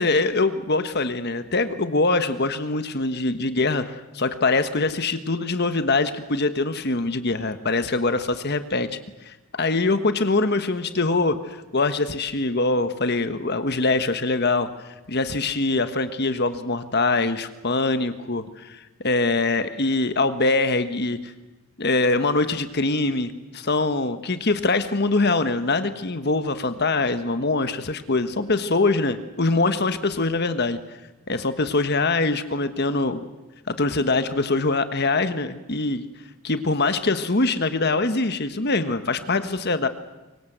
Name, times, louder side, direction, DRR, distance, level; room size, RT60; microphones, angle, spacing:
voice 1, 0.0-9.0 9.2-14.7 15.1-21.3 21.8-30.8 31.3-33.2 33.7-36.0 36.4-39.9, left 3 dB, 45° left, 10 dB, 1.3 m, -23 dB
24.0 x 24.0 x 8.0 m, 1.1 s
head